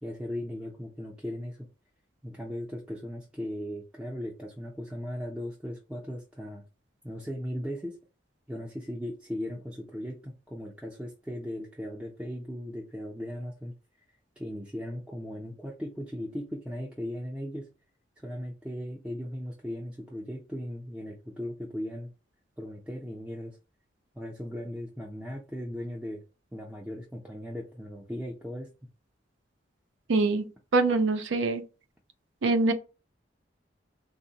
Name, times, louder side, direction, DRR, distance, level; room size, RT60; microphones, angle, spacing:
voice 1, 0.0-1.7 2.2-6.6 7.0-8.0 8.5-13.7 14.4-17.7 18.2-22.1 22.6-23.6 24.1-26.2 26.5-28.7, equal, 5° right, 0.4 m, -37 dB
voice 2, 30.1-31.6 32.4-32.7, right 3 dB, 85° right, 0.5 m, -24 dB
3.7 x 2.1 x 2.7 m
head